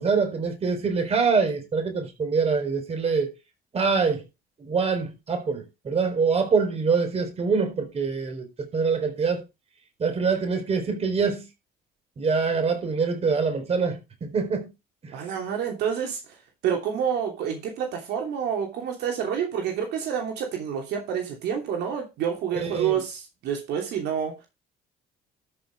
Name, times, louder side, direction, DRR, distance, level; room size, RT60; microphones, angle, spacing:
voice 1, 0.0-3.3 3.7-4.2 4.7-8.5 8.7-9.4 10.0-11.4 12.2-14.7 15.0-15.1 22.6-22.9, right 5 dB, 35° right, 4.2 m, -24 dB
voice 2, 15.1-24.5, right 8 dB, 80° right, 2.9 m, -28 dB
13.0 x 6.0 x 4.7 m
cardioid pair, 110°, 17 cm